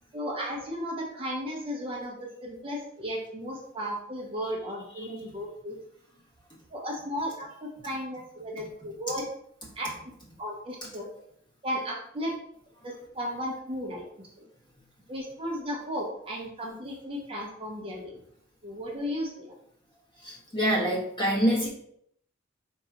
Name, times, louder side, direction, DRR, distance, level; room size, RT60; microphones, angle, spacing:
voice 1, 0.1-5.8 6.7-9.2 9.8-9.9 10.4-11.1 11.6-12.3 12.8-14.0 14.4-14.5 15.1-18.1 18.6-19.5, equal, 25° right, -3 dB, 0.8 m, -35 dB
voice 2, 20.2-21.7, equal, 25° left, -4 dB, 1.3 m, -26 dB
4.6 x 2.9 x 3.7 m, 0.70 s
head